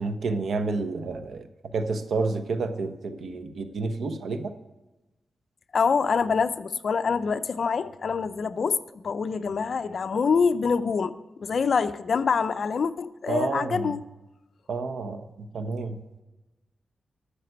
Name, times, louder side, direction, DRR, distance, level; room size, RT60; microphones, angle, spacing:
voice 1, 0.0-4.5 13.3-14.0 14.7-16.0, right 3 dB, 75° right, 1.1 m, -30 dB
voice 2, 5.7-14.0, left 5 dB, 60° left, 0.6 m, -25 dB
12.5 x 6.7 x 8.1 m
wide cardioid pair, 110°, 0 cm